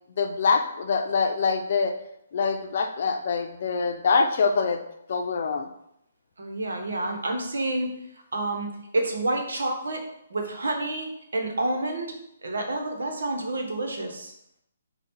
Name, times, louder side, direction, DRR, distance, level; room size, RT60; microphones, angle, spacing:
voice 1, 0.2-1.9 2.3-4.8 5.1-5.7, left 4 dB, 55° left, 5 dB, 0.6 m, -24 dB
voice 2, 6.4-8.0 8.3-10.0 10.3-12.1 12.4-14.3, right 2 dB, 80° right, 3 dB, 1.0 m, -29 dB
5.0 x 2.4 x 4.4 m, 0.76 s
hypercardioid pair, 150°, 0 cm